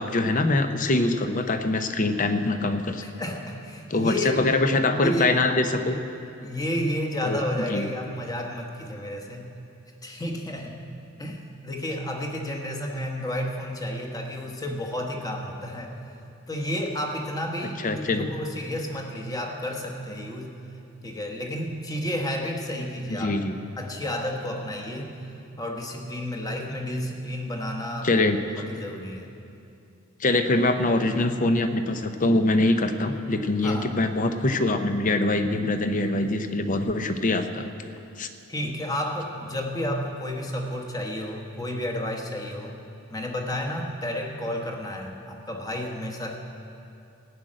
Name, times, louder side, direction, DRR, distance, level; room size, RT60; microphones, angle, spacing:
voice 1, 0.0-3.0 3.9-6.0 7.2-7.4 7.7-7.8 17.6-18.3 23.2-23.5 28.0-28.4 30.2-37.9 38.2-38.3, left 2 dB, 40° left, 8 dB, 0.7 m, -24 dB
voice 2, 3.0-4.5 4.9-5.3 6.4-9.5 10.0-10.8 11.2-15.9 16.5-20.6 21.0-23.4 23.8-25.2 25.6-28.1 28.6-29.3 33.6-34.0 38.5-42.8 43.1-46.4, left 1 dB, 15° left, 1 dB, 1.2 m, -31 dB
15.5 x 6.4 x 8.8 m, 2.7 s
head